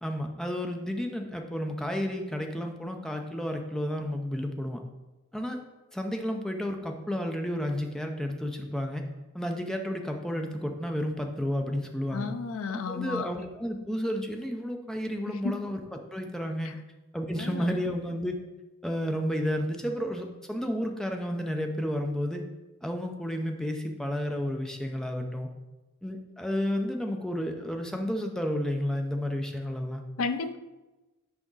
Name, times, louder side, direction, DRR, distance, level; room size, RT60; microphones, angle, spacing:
voice 1, 0.0-4.8 5.3-5.6 5.9-9.1 9.3-12.3 12.7-15.8 16.1-16.8 17.1-18.4 18.8-22.4 22.8-25.5 26.0-30.0, equal, ahead, 3 dB, 0.4 m, -31 dB
voice 2, 12.1-13.3 15.3-15.6 16.6-16.7 17.4-17.8 30.2-30.6, left 4 dB, 65° left, 10 dB, 0.4 m, -33 dB
6.0 x 4.9 x 3.9 m, 1.1 s
head